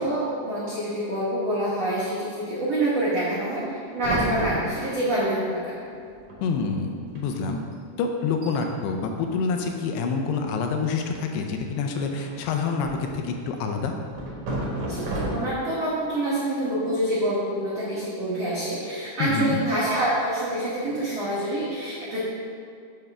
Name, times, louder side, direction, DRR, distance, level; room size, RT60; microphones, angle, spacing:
voice 1, 0.0-3.6 3.9-5.8 14.8-22.2, right 1 dB, 85° right, -8 dB, 1.4 m, -26 dB
sound 1, 4.0-5.2 6.0-6.1 6.3-6.7 7.0-7.2 7.7-7.8 8.2-8.5 9.6-10.2 12.2-13.1 14.1-15.7, right 1 dB, 70° right, 1.5 m, -32 dB
voice 2, 6.4-7.7 8.0-13.9 19.2-19.6, left 5 dB, 80° left, 3 dB, 2.5 m, -27 dB
8.7 x 3.3 x 6.0 m, 2.3 s
omnidirectional pair, 4.9 m